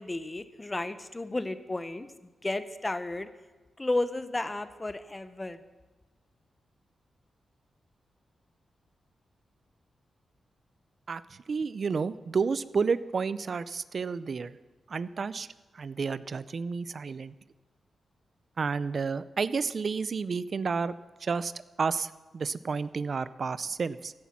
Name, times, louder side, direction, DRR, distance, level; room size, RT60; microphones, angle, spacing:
voice 1, 0.0-3.3 3.8-5.6, left 2 dB, 20° left, 12 dB, 0.8 m, -33 dB
voice 2, 11.1-14.6 14.9-15.5 15.7-17.3 18.6-20.9 21.2-21.5 21.8-24.1, right 5 dB, 50° right, 17 dB, 0.5 m, -31 dB
16.0 x 11.0 x 5.9 m, 1.2 s
wide cardioid pair, 105°, 0 cm